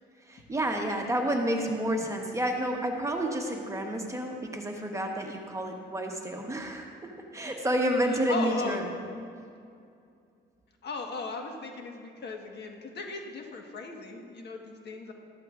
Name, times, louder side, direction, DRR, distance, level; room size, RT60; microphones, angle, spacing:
voice 1, 0.2-8.8, right 1 dB, 15° right, 1 dB, 1.2 m, -30 dB
voice 2, 8.3-8.8 10.8-15.1, left 4 dB, 55° left, 2 dB, 1.5 m, -37 dB
14.0 x 11.5 x 2.5 m, 2.4 s
cardioid pair, 90°, 20 cm